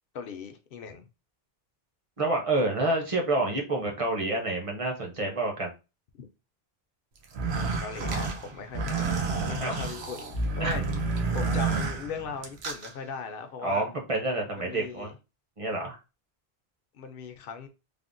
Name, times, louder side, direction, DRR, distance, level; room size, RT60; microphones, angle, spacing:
voice 1, 0.1-1.1 7.8-9.1 9.4-10.8 11.3-13.9 14.6-15.1 16.9-17.7, left 5 dB, 65° left, 0.7 m, -38 dB
voice 2, 2.2-5.7 9.6-9.8 10.6-10.8 13.6-15.1 15.6-16.0, right 2 dB, 40° right, 0.7 m, -28 dB
sound 1, 7.2-12.9, right 4 dB, 85° right, 0.9 m, -30 dB
3.4 x 2.0 x 2.5 m
omnidirectional pair, 1.0 m